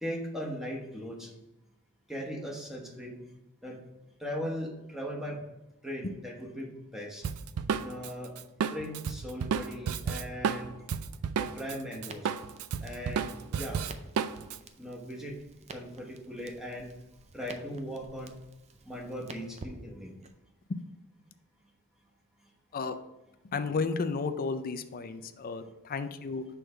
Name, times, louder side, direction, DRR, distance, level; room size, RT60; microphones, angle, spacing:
voice 1, 0.0-1.3 2.1-3.2 3.6-3.8 4.2-5.4 5.8-7.2 7.8-8.3 8.6-10.7 11.4-12.3 12.8-13.8 14.8-15.4 15.7-16.9 17.3-18.4 18.8-20.1, equal, ahead, -2 dB, 1.0 m, -39 dB
Drum kit, 7.2-11.8 12.0-14.6, right 7 dB, 90° right, 0.4 m, -32 dB
Crackle, 12.0-20.3, right 3 dB, 30° right, 0.4 m, -51 dB
voice 2, 23.5-26.4, left 4 dB, 40° left, 10 dB, 0.4 m, -33 dB
6.2 x 3.4 x 4.9 m, 0.97 s
head